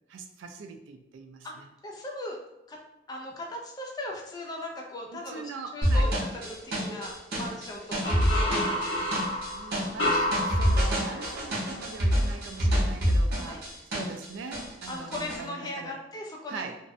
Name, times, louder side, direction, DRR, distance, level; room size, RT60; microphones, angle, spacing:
voice 1, 0.1-1.7 5.1-6.1 9.5-16.0 16.5-16.8, right 4 dB, 85° right, 6 dB, 0.3 m, -42 dB
voice 2, 1.8-2.4 2.7-2.8 3.1-8.9 10.2-10.3 11.1-11.3 13.5-13.6 14.9-16.6, left 1 dB, 20° left, 0 dB, 0.3 m, -38 dB
sound 1, 5.8-14.3 14.5-15.4, equal, 55° right, 0.7 m, -26 dB
sound 2, 8.0-11.6, left 1 dB, 85° left, 0.8 m, -30 dB
2.5 x 2.1 x 2.5 m, 0.92 s
head